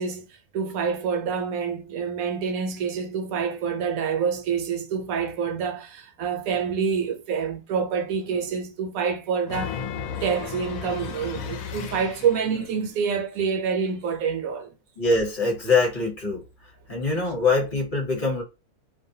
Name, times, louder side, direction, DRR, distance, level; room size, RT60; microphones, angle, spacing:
voice 1, 0.0-9.8 10.1-14.7, right 6 dB, 75° right, 1.0 m, -27 dB
sound 1, 9.5-12.7, left 7 dB, 75° left, 1.0 m, -34 dB
voice 2, 15.0-16.4 16.9-18.4, left 3 dB, 40° left, 1.1 m, -23 dB
2.6 x 2.1 x 2.7 m
omnidirectional pair, 1.5 m